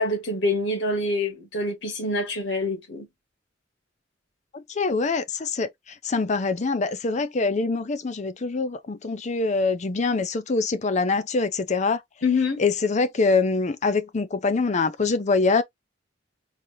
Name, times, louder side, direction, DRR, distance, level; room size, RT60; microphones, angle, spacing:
voice 1, 0.0-3.1 12.2-12.6, left 2 dB, 90° left, 2.0 m, -25 dB
voice 2, 4.5-5.7 6.0-12.0 12.6-15.6, left 4 dB, 40° left, 0.5 m, -24 dB
4.1 x 2.8 x 3.1 m
head